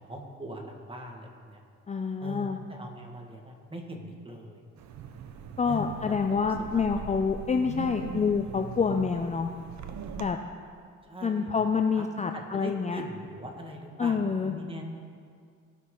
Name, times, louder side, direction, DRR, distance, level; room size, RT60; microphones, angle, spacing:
voice 1, 0.0-1.6 2.2-4.6 5.6-6.8 11.1-11.5 11.9-12.1 12.3-14.8, right 1 dB, 20° right, 1 dB, 1.7 m, -41 dB
voice 2, 1.9-2.6 5.6-9.5 10.2-10.4 11.2-13.0 14.0-14.5, left 5 dB, 25° left, 5 dB, 0.5 m, -27 dB
Wind, 4.8-10.3, right 6 dB, 70° right, 0.8 m, -41 dB
18.0 x 6.2 x 3.8 m, 2.1 s
cardioid pair, 90°, 30 cm